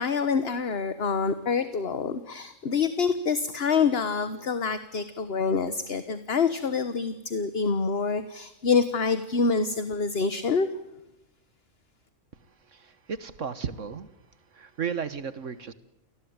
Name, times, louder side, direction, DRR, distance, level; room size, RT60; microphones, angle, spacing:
voice 1, 0.0-10.7, left 5 dB, 50° left, 12 dB, 1.5 m, -26 dB
voice 2, 12.5-14.1 14.5-15.7, right 6 dB, 70° right, 14 dB, 1.7 m, -34 dB
29.0 x 19.5 x 9.6 m, 0.88 s
omnidirectional pair, 1.3 m